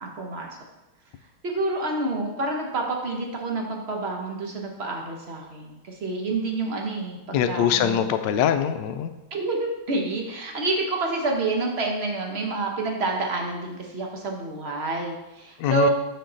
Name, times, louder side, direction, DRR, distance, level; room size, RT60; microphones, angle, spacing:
voice 1, 0.0-0.5 1.4-8.0 9.3-15.9, right 3 dB, 50° right, 1 dB, 0.8 m, -28 dB
voice 2, 7.3-9.1 15.6-15.9, left 9 dB, 75° left, 9 dB, 1.1 m, -23 dB
6.7 x 6.6 x 3.9 m, 1.0 s
omnidirectional pair, 2.3 m